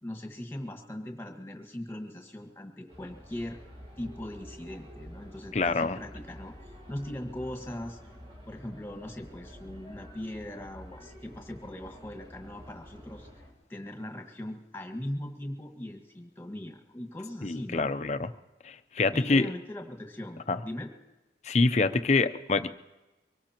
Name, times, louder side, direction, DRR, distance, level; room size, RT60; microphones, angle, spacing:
voice 1, 0.0-3.6 4.0-8.0 8.5-17.9 19.1-20.9, left 1 dB, 15° left, 4 dB, 1.6 m, -40 dB
sound 1, 2.9-13.5, equal, 35° right, 3.4 m, -49 dB
voice 2, 5.5-6.0 17.4-18.3 18.6-19.5 20.5-20.6 21.4-22.7, left 3 dB, 40° left, 11 dB, 0.6 m, -26 dB
24.0 x 18.5 x 3.0 m, 1.1 s
head